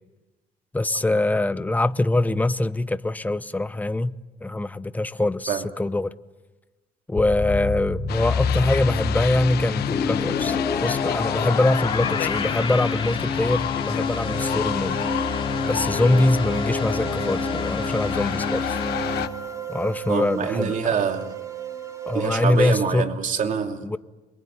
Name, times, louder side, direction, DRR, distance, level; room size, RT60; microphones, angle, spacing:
voice 1, 0.7-4.1 4.4-6.1 7.1-15.0 15.7-18.8 19.7-20.8 22.1-23.1 23.8-24.0, left 2 dB, 10° left, 0.9 m, -23 dB
sound 1, 7.2-19.3, left 4 dB, 30° left, 2.5 m, -27 dB
sound 2, 8.1-19.3, left 12 dB, 70° left, 1.2 m, -32 dB
sound 3, 14.1-22.7, right 7 dB, 20° right, 3.2 m, -36 dB
voice 2, 20.1-21.4 22.1-23.9, right 6 dB, 50° right, 2.9 m, -25 dB
27.5 x 22.0 x 9.4 m
cardioid pair, 110°, 17 cm